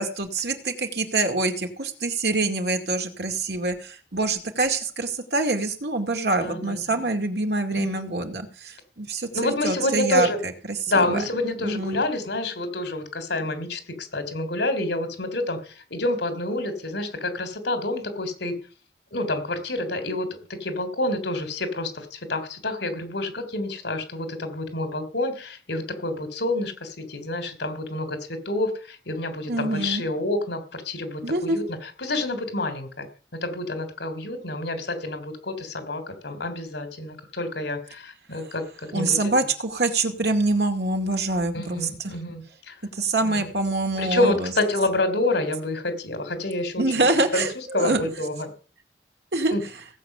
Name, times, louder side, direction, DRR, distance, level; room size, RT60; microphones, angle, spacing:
voice 1, 0.0-10.3 10.7-11.2 11.6-12.0 29.5-30.0 31.2-31.6 38.9-42.1 43.0-44.5 46.8-48.0 49.3-49.5, right 2 dB, 70° right, 5 dB, 2.3 m, -25 dB
voice 2, 6.4-7.0 7.7-8.0 9.3-10.4 10.9-18.5 19.1-20.3 20.6-33.1 33.4-38.6 38.9-39.3 41.5-42.7 43.2-43.5 44.0-48.5 49.5-49.6, left 2 dB, 80° left, 9 dB, 3.4 m, -28 dB
17.5 x 8.3 x 6.7 m, 0.40 s
head